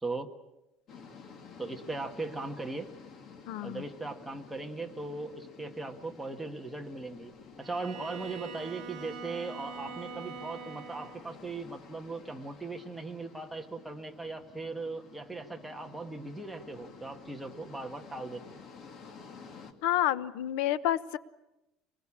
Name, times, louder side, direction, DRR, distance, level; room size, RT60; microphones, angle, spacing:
sound 1, 0.9-19.7, left 5 dB, 35° left, 2.1 m, -52 dB
voice 1, 1.6-2.9 3.6-7.3 7.6-18.6, right 3 dB, 5° right, 3 dB, 1.4 m, -39 dB
voice 2, 3.5-3.8 19.8-21.2, left 12 dB, 90° left, 15 dB, 0.9 m, -29 dB
Bowed string instrument, 7.6-11.3, right 7 dB, 40° right, 2.6 m, -44 dB
25.0 x 20.5 x 8.6 m, 0.97 s
cardioid pair, 175°, 0 cm